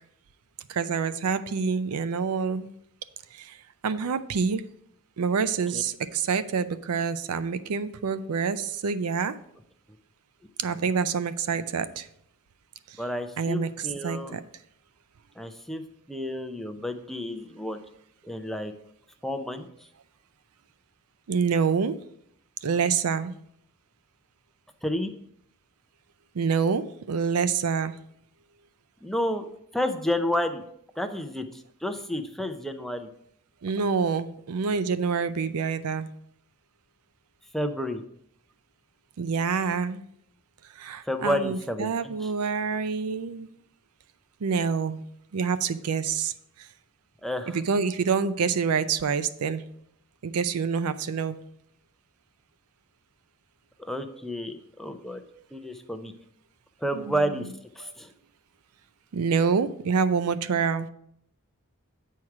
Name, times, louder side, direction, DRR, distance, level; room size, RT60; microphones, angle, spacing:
voice 1, 0.7-2.7 3.3-3.6 3.8-4.6 5.2-9.3 10.6-12.1 12.9-13.0 13.4-14.4 21.3-22.0 22.6-23.3 26.3-28.0 33.6-36.1 39.2-40.0 40.8-43.5 44.4-45.0 45.3-46.3 46.6-46.7 47.5-49.6 50.2-51.4 56.9-57.5 57.8-57.9 59.1-60.9, right 5 dB, 80° right, 13 dB, 0.5 m, -27 dB
voice 2, 13.0-14.4 15.4-15.8 16.1-17.8 18.2-18.7 19.2-19.7 24.8-25.1 29.0-29.5 29.7-30.6 31.0-33.1 37.5-38.0 41.1-42.3 47.2-47.6 53.8-55.2 55.5-56.1 56.8-57.4 57.8-58.1, equal, ahead, 6 dB, 0.5 m, -30 dB
8.6 x 4.6 x 4.7 m, 0.71 s
head